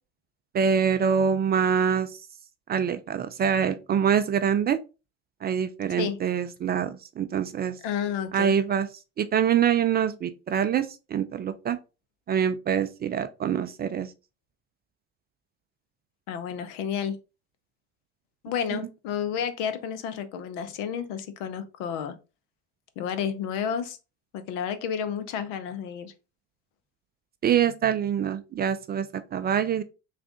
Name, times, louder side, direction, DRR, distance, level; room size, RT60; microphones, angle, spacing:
voice 1, 0.5-2.1 2.7-4.8 5.4-7.8 8.3-8.9 9.2-11.8 12.3-14.1 18.7-18.8 27.4-29.8, right 8 dB, 30° right, 0.4 m, -25 dB
voice 2, 7.8-8.6 16.3-17.2 18.4-22.1 23.0-24.0 24.3-26.1, left 8 dB, 65° left, 0.7 m, -31 dB
3.5 x 2.5 x 3.5 m
hypercardioid pair, 75°, 35 cm